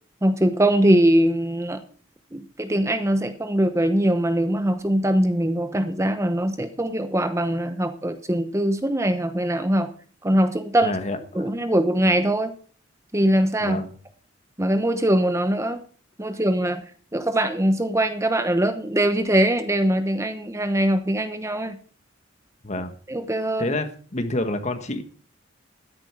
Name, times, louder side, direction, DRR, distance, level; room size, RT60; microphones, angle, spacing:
voice 1, 0.2-1.8 2.3-9.9 10.2-11.0 11.3-12.5 13.1-13.8 14.6-15.8 16.2-16.8 17.1-21.8 23.1-23.7, right 1 dB, 15° right, 9 dB, 0.9 m, -22 dB
voice 2, 10.8-11.5 13.6-13.9 22.6-23.0 23.6-25.0, left 1 dB, 35° left, 8 dB, 1.6 m, -28 dB
13.0 x 10.5 x 4.8 m, 0.42 s
head